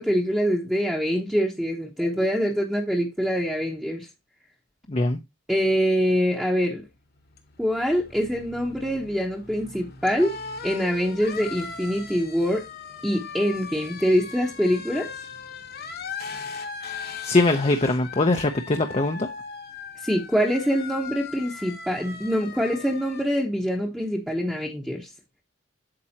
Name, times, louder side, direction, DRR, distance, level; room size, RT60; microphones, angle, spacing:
voice 1, 0.0-4.1 5.5-6.8 7.6-10.3 10.6-12.6 13.0-15.1 20.0-25.1, equal, 5° right, 1.0 m, -24 dB
voice 2, 4.9-5.2 17.2-19.3, left 2 dB, 30° left, 0.7 m, -22 dB
sound 1, 6.8-23.2, left 5 dB, 55° left, 1.3 m, -39 dB
8.7 x 7.5 x 2.8 m
head